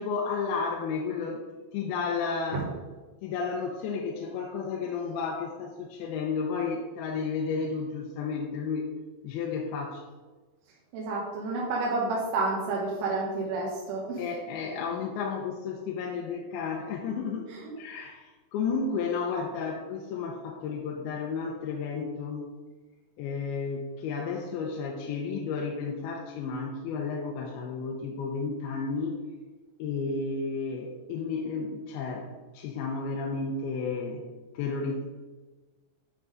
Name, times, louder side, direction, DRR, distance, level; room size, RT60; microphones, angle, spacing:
voice 1, 0.0-1.4 1.7-2.6 3.2-8.9 9.2-10.0 14.2-22.5 23.2-29.2 29.8-34.2 34.5-35.0, left 5 dB, 80° left, 0 dB, 2.5 m, -32 dB
voice 2, 10.9-14.2 17.5-17.7, right 3 dB, 85° right, -4 dB, 3.1 m, -30 dB
9.4 x 3.7 x 4.9 m, 1.3 s
omnidirectional pair, 4.7 m